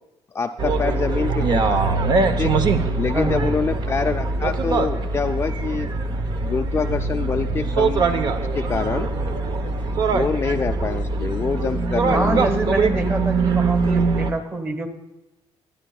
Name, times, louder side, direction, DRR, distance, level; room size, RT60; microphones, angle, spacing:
voice 1, 0.3-1.8 2.4-2.5 3.0-5.9 6.4-8.1 8.5-9.1 10.1-12.4, left 5 dB, 25° left, 5 dB, 0.4 m, -25 dB
sound 1, 0.6-14.3, right 3 dB, 50° right, 0.9 m, -22 dB
voice 2, 3.1-3.5 12.1-14.9, right 1 dB, 25° right, 6 dB, 1.7 m, -26 dB
25.5 x 10.0 x 2.3 m, 1.0 s
cardioid pair, 130°, 10 cm